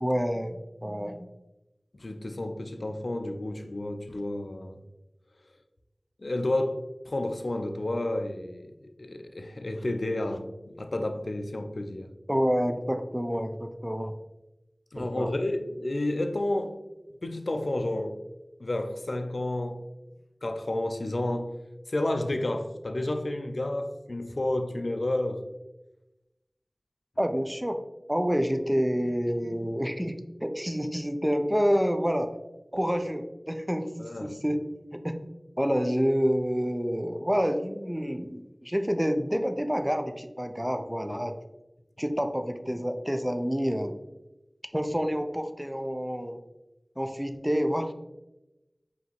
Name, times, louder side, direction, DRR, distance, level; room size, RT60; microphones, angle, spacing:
voice 1, 0.0-1.3 12.3-14.1 15.0-15.3 27.2-27.8 28.1-32.3 32.7-34.6 34.9-35.2 35.6-41.3 42.0-43.9 44.7-46.4 47.0-47.9, equal, 10° right, 7 dB, 0.4 m, -28 dB
voice 2, 1.9-4.8 6.2-8.7 9.0-12.1 14.9-16.8 17.2-18.2 18.6-19.8 20.4-21.5 21.9-25.4 34.0-34.4 41.0-41.2, left 1 dB, 75° left, 7 dB, 0.4 m, -31 dB
5.1 x 2.8 x 2.9 m, 0.99 s
wide cardioid pair, 40°, 0 cm